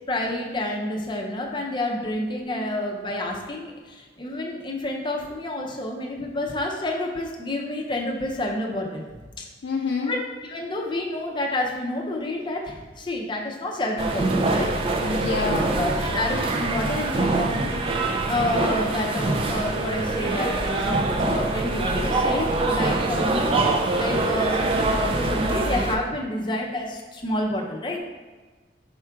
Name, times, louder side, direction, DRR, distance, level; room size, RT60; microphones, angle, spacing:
voice 1, 0.1-9.0 9.4-9.5 10.1-10.2 10.4-14.7 15.5-17.8 18.2-23.6 23.9-28.0, left 1 dB, 25° left, 0 dB, 0.5 m, -29 dB
voice 2, 9.6-10.1 15.0-16.2, left 4 dB, 75° left, -2 dB, 0.4 m, -28 dB
sound 1, 14.0-26.0, right 2 dB, 30° right, 0.3 m, -24 dB
4.4 x 2.4 x 4.5 m, 1.4 s
head